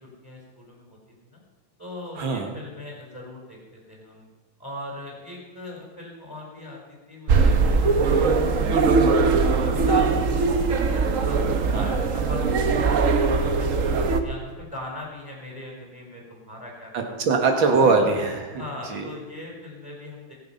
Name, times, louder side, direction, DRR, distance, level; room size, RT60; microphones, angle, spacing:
voice 1, 0.0-1.4 1.8-4.3 4.6-9.3 9.6-13.0 13.3-17.2 17.8-17.9 18.5-20.3, left 1 dB, 5° right, -2 dB, 3.9 m, -40 dB
voice 2, 2.2-2.5 11.7-12.0 16.9-18.6 18.9-19.1, right 4 dB, 70° right, 3 dB, 2.5 m, -22 dB
sound 1, 7.3-14.2, right 4 dB, 50° right, 1.1 m, -21 dB
21.5 x 7.4 x 5.6 m, 1.3 s
omnidirectional pair, 2.2 m